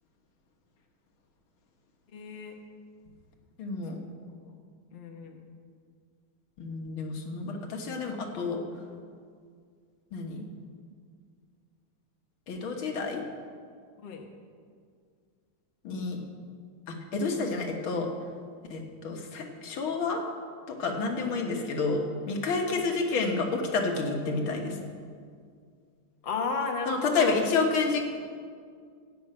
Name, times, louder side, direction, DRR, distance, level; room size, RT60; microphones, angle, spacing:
voice 1, 2.1-2.6 4.0-4.1 4.4-4.5 4.9-5.4 14.0-14.3 21.1-21.4 22.7-22.9 26.2-27.4, left 4 dB, 35° left, 2 dB, 1.1 m, -34 dB
voice 2, 3.6-4.0 6.6-8.6 10.1-10.4 12.5-13.2 15.8-16.2 16.9-18.1 18.7-20.2 20.7-24.8 26.9-28.0, left 4 dB, 70° left, 2 dB, 2.2 m, -29 dB
16.0 x 6.0 x 8.7 m, 2.1 s
omnidirectional pair, 2.4 m